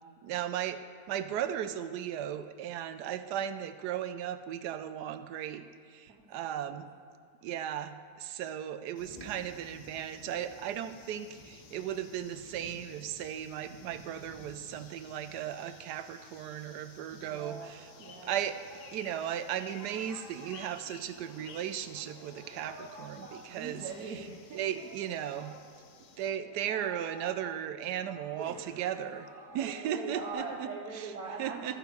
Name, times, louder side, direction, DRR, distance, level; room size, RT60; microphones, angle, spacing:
voice 1, 0.2-0.8 1.1-5.6 5.9-6.9 7.4-17.9 18.2-18.6 18.9-23.8 24.5-25.5 26.2-29.3 29.5-30.4 30.9-31.1 31.4-31.8, right 10 dB, 85° right, 11 dB, 1.2 m, -36 dB
voice 2, 6.1-6.8 17.1-18.3 23.1-23.2 23.5-24.9 28.4-28.9 29.5-31.8, right 4 dB, 65° right, -2 dB, 1.3 m, -42 dB
sound 1, 8.9-26.3, left 6 dB, 80° left, 1.4 m, -56 dB
sound 2, 9.0-15.8, left 2 dB, 25° left, 1.1 m, -55 dB
Singing, 17.2-30.3, right 1 dB, 15° right, 1.1 m, -52 dB
14.0 x 6.6 x 4.7 m, 2.2 s
omnidirectional pair, 1.7 m